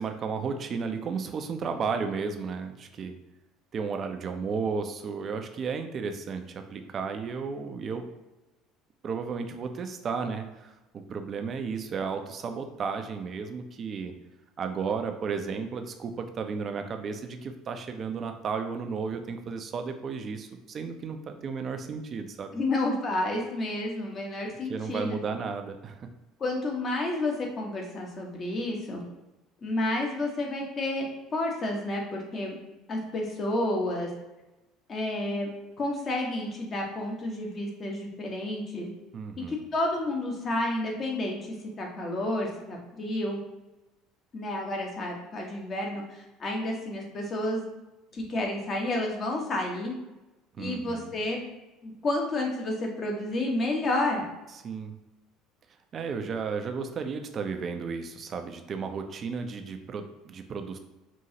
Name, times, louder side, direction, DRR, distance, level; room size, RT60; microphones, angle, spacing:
voice 1, 0.0-3.1 3.7-8.1 9.0-14.1 14.6-22.6 24.7-26.1 39.1-39.6 50.6-51.1 54.5-54.9 55.9-60.8, right 5 dB, 40° right, 6 dB, 0.5 m, -33 dB
voice 2, 22.5-25.2 26.4-29.0 29.6-32.6 32.9-34.1 34.9-35.5 35.8-38.9 39.5-43.4 44.3-47.6 48.1-49.9 50.6-51.4 51.8-54.2, left 1 dB, 40° left, 0 dB, 1.1 m, -30 dB
5.2 x 2.7 x 2.8 m, 1.0 s
hypercardioid pair, 65°, 0 cm